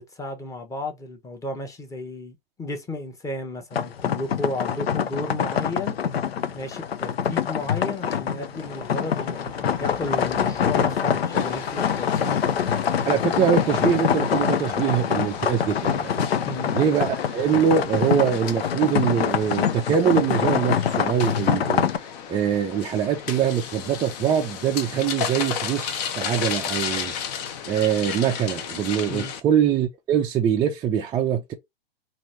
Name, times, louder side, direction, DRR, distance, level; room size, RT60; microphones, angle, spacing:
voice 1, 0.0-5.9 6.5-12.3 16.4-16.7 29.1-29.3, left 2 dB, 10° left, 0.9 m, -33 dB
sound 1, 3.7-22.0, left 8 dB, 85° left, 0.5 m, -25 dB
sound 2, 8.6-28.1, left 3 dB, 30° left, 1.4 m, -45 dB
sound 3, 11.3-29.4, left 8 dB, 45° left, 0.7 m, -35 dB
voice 2, 13.1-16.1 16.7-21.9 22.3-31.5, right 8 dB, 15° right, 0.3 m, -23 dB
3.0 x 2.6 x 4.2 m
hypercardioid pair, 110°, 30 cm